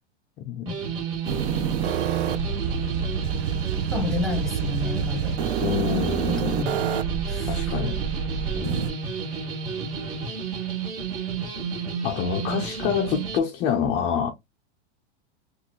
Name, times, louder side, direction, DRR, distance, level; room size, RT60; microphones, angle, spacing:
voice 1, 0.5-0.8 5.6-6.5 7.5-8.0 8.5-8.9 12.0-14.3, left 7 dB, 20° left, 0.3 m, -27 dB
sound 1, 0.7-13.4, right 5 dB, 50° right, 2.2 m, -31 dB
sound 2, 1.3-8.9, right 8 dB, 65° right, 0.6 m, -28 dB
voice 2, 3.9-5.4 6.3-6.8 7.3-7.9 8.6-8.8, left 5 dB, ahead, 0.8 m, -31 dB
3.8 x 2.4 x 2.9 m
supercardioid pair, 145°, 35 cm